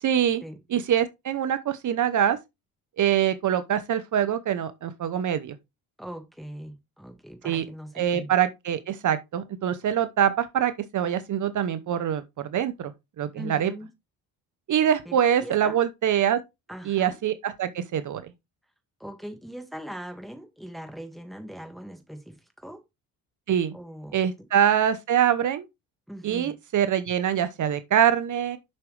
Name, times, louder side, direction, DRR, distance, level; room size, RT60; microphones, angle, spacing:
voice 1, 0.0-0.4 0.7-2.4 3.0-5.5 7.4-7.6 8.0-12.9 13.2-13.7 14.7-16.4 16.9-18.2 23.5-23.7 24.1-25.6 26.2-28.6, right 9 dB, 55° right, 0.8 m, -24 dB
voice 2, 6.0-8.3 13.3-13.9 15.1-15.8 16.7-17.2 19.0-22.8 23.7-24.5 26.1-26.6, equal, ahead, 1.8 m, -41 dB
7.4 x 6.0 x 3.2 m
cardioid pair, 110°, 37 cm